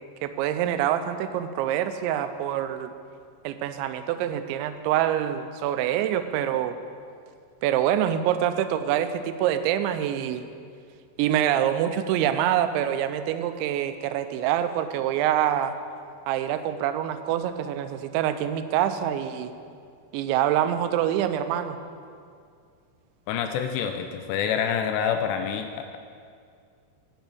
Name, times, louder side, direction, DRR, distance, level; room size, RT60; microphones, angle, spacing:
voice 1, 0.2-2.9 3.4-6.8 7.6-10.4 11.2-15.7 16.3-19.5 20.1-21.8, right 11 dB, 85° right, 10 dB, 2.9 m, -25 dB
voice 2, 23.3-26.0, left 7 dB, 80° left, 7 dB, 2.6 m, -27 dB
8.8 x 6.2 x 8.2 m, 2.3 s
omnidirectional pair, 5.2 m